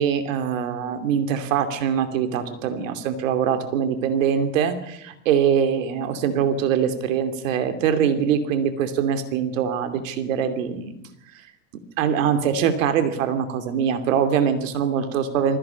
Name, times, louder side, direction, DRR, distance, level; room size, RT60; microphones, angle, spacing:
voice 1, 0.0-11.0 12.0-15.6, right 8 dB, 80° right, 9 dB, 2.9 m, -23 dB
20.0 x 15.5 x 8.3 m, 0.80 s
hypercardioid pair, 85°, 38 cm